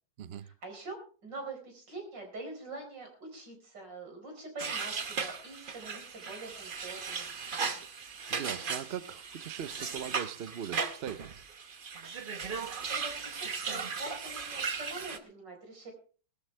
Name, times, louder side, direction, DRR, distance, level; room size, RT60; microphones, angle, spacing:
voice 1, 0.3-7.3 12.9-15.9, right 2 dB, 80° right, 4.9 m, -44 dB
sound 1, 4.6-15.2, right 5 dB, 35° right, 0.9 m, -37 dB
voice 2, 8.3-11.4, right 9 dB, 60° right, 0.6 m, -40 dB
18.5 x 13.5 x 3.3 m
omnidirectional pair, 1.9 m